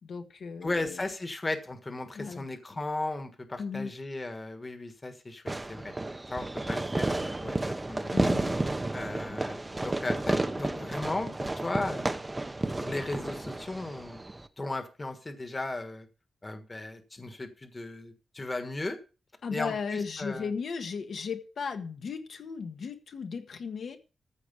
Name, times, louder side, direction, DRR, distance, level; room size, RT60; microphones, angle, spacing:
voice 1, 0.0-1.0 2.1-2.5 3.6-3.9 8.1-8.6 19.4-24.0, left 5 dB, 65° left, 5 dB, 1.4 m, -36 dB
voice 2, 0.6-5.9 6.3-8.1 8.9-12.1 12.8-14.2 14.6-16.1 16.4-19.0 19.5-20.5, left 2 dB, 20° left, 7 dB, 1.5 m, -36 dB
Fireworks, 5.5-14.5, right 2 dB, 15° right, 0.8 m, -32 dB
14.5 x 4.9 x 8.4 m, 0.35 s
wide cardioid pair, 160°, 0 cm